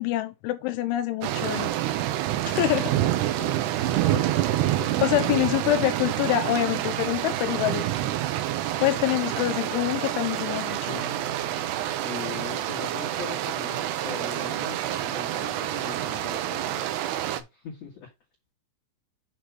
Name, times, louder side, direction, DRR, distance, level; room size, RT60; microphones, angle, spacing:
voice 1, 0.0-1.7 2.5-2.9 5.0-7.9 8.8-11.1, left 15 dB, 80° left, 2.9 m, -26 dB
sound 1, 1.2-17.4, right 13 dB, 80° right, 2.4 m, -27 dB
voice 2, 2.8-4.5 4.8-5.1 5.4-5.9 12.0-18.1, left 9 dB, 50° left, 2.1 m, -41 dB
sound 2, 10.9-14.3, right 4 dB, 40° right, 1.4 m, -45 dB
8.6 x 3.1 x 5.8 m
omnidirectional pair, 5.6 m